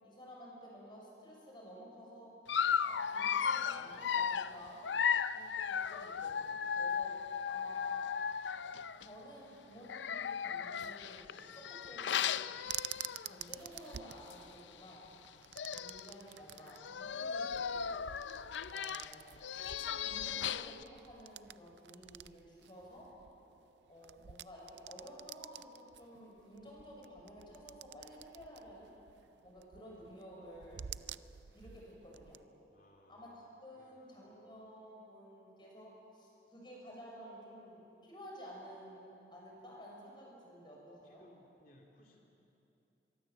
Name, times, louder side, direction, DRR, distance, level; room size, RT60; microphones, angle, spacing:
voice 1, 0.0-2.3 2.8-4.9 5.3-7.1 7.5-8.1 8.5-8.7 9.0-12.5 13.3-15.1 15.7-17.9 18.7-23.1 23.9-28.9 29.4-30.9 31.5-32.4 33.1-39.0 39.3-41.2, equal, 25° left, -2 dB, 6.5 m, -53 dB
Dog, 2.5-9.1 9.8-13.4 13.9-14.0 14.3-14.4 15.3-15.4 15.5-16.1 16.7-20.8, left 7 dB, 90° left, 0.5 m, -36 dB
sound 1, 12.6-32.4, right 11 dB, 75° right, 0.5 m, -50 dB
voice 2, 32.7-33.3 33.7-34.1 41.0-42.2, left 1 dB, 50° left, 0 dB, 2.7 m, -64 dB
25.0 x 22.5 x 7.7 m, 2.9 s
head